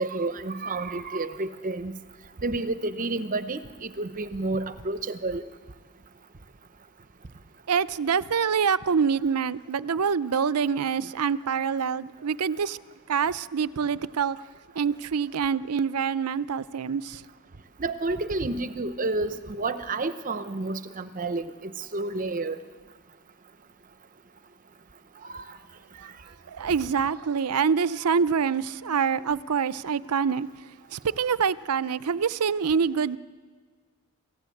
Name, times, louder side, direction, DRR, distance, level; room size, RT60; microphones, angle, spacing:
voice 1, 0.0-2.0 2.4-5.4 17.8-22.6 25.2-25.6 26.0-26.1, right 2 dB, 35° right, 0.8 m, -30 dB
voice 2, 7.7-12.8 13.1-14.4 14.8-17.2 26.0-26.1 26.5-30.5 30.9-33.2, right 6 dB, 90° right, 0.6 m, -26 dB
27.5 x 15.5 x 8.5 m
head